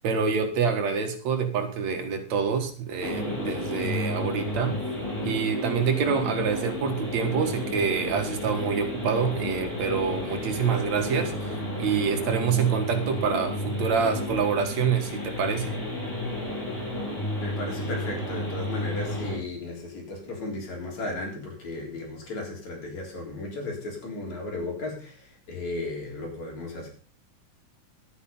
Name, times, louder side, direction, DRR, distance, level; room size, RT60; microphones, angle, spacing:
voice 1, 0.0-4.8 5.2-11.5 11.8-15.7, right 6 dB, 65° right, 6 dB, 2.8 m, -26 dB
sound 1, 3.0-19.4, left 1 dB, 5° left, 7.8 m, -32 dB
voice 2, 17.4-25.2 25.5-26.9, left 2 dB, 65° left, 0 dB, 5.1 m, -35 dB
11.5 x 9.6 x 5.5 m, 0.39 s
omnidirectional pair, 3.5 m